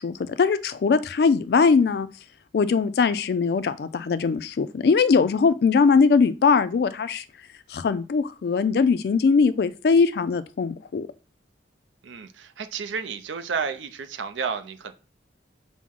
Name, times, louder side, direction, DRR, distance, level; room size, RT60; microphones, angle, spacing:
voice 1, 0.0-2.1 2.5-7.2 7.7-11.1, left 5 dB, 60° left, 0.3 m, -21 dB
voice 2, 12.0-14.9, right 5 dB, 90° right, 0.5 m, -31 dB
5.9 x 2.1 x 3.6 m
head